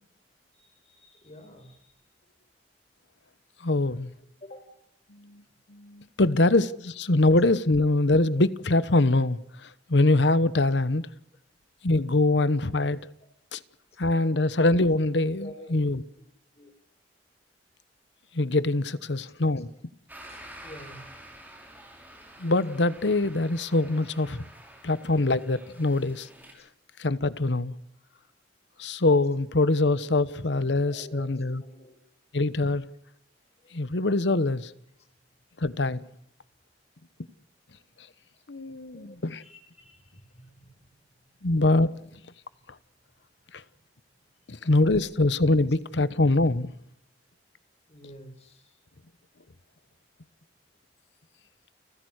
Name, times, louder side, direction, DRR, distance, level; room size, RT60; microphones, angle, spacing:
voice 1, 0.5-2.0 4.4-4.7 5.5-5.6 13.2-13.3 15.4-15.9 16.5-16.7 19.3-19.8 20.2-21.1 23.8-23.9 30.9-32.0 33.6-33.9 35.0-35.1 38.3-38.4 38.8-41.4 43.7-43.8 44.4-44.7 47.9-48.8, left 1 dB, 35° left, 4.8 m, -49 dB
voice 2, 3.6-4.1 5.1-5.4 5.7-11.0 11.8-13.0 13.5-13.6 14.0-16.0 18.3-19.7 22.4-24.5 24.8-26.3 27.0-27.7 28.8-31.6 32.3-32.8 33.7-34.7 35.6-36.0 38.5-39.4 41.4-41.9 43.5-43.6 44.5-46.7, left 2 dB, 75° left, 1.1 m, -24 dB
sound 1, 20.1-26.5, right 1 dB, 10° right, 5.9 m, -48 dB
29.5 x 15.5 x 6.5 m
head